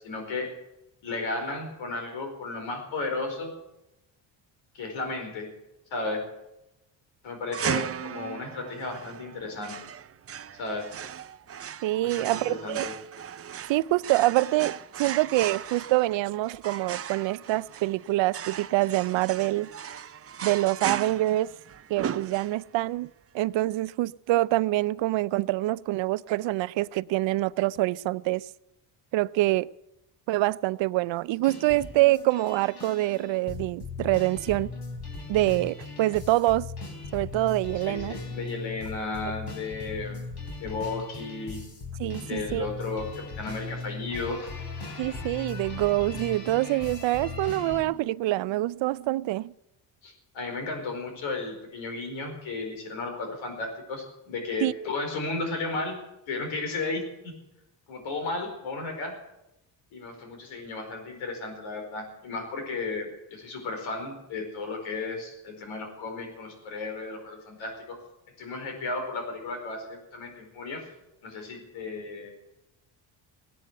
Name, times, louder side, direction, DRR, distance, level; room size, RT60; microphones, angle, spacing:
voice 1, 0.0-0.5 1.0-3.5 4.7-5.5 5.9-6.3 7.2-9.8 10.5-10.9 12.0-12.9 37.8-40.2 40.6-41.6 42.2-44.5 50.0-56.0 56.3-57.4 57.9-59.1 59.9-68.0 68.4-70.9 71.2-72.3, left 3 dB, 85° left, 4.8 m, -34 dB
sound 1, 7.5-22.9, right 8 dB, 30° right, 0.6 m, -36 dB
voice 2, 11.8-12.8 13.7-14.7 15.0-19.7 20.4-21.5 21.9-23.1 23.3-28.5 29.1-29.7 30.3-34.7 35.3-36.7 37.1-38.2 42.0-42.7 45.0-49.5 54.6-54.7, right 17 dB, 75° right, 0.6 m, -25 dB
sound 2, 31.4-47.8, left 3 dB, 55° left, 4.2 m, -38 dB
16.5 x 11.0 x 8.0 m
cardioid pair, 90°, 46 cm